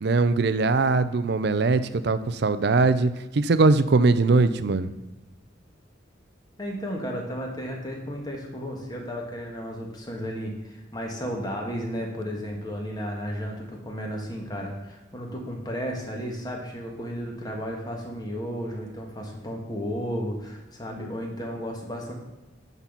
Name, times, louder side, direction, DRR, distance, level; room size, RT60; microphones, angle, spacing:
voice 1, 0.0-4.9, right 3 dB, 55° right, 13 dB, 0.5 m, -21 dB
voice 2, 6.6-22.1, equal, 20° left, 0 dB, 1.5 m, -33 dB
9.8 x 4.1 x 6.0 m, 1.1 s
head